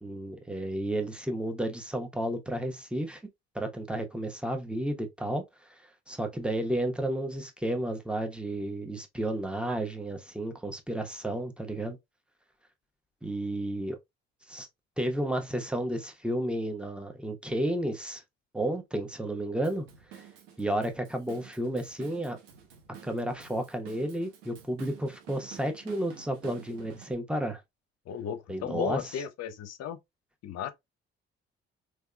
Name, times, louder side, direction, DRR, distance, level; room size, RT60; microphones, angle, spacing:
voice 1, 0.0-3.2 3.5-5.4 6.1-12.0 13.2-14.0 14.5-14.7 15.0-18.2 18.5-19.9 20.1-20.3 20.6-22.4 23.0-27.6 28.5-29.0, right 1 dB, 5° right, 1.0 m, -32 dB
Drum kit / Drum, 19.6-27.1, right 8 dB, 80° right, 0.8 m, -51 dB
voice 2, 28.1-30.0 30.4-30.7, left 8 dB, 55° left, 0.7 m, -34 dB
3.5 x 3.2 x 2.2 m
hypercardioid pair, 50°, 31 cm